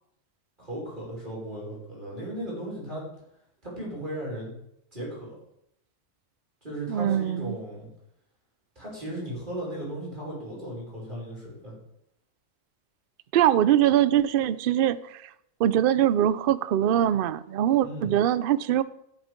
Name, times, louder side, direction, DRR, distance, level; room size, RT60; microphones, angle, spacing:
voice 1, 0.6-3.0 3.6-4.5 4.9-5.3 6.6-7.9 8.8-11.8 17.8-18.1, right 1 dB, 35° right, -5 dB, 6.1 m, -36 dB
voice 2, 6.9-7.6 13.3-15.3 15.6-18.8, right 11 dB, 60° right, 16 dB, 0.6 m, -22 dB
14.0 x 8.2 x 5.1 m, 0.77 s
omnidirectional pair, 1.4 m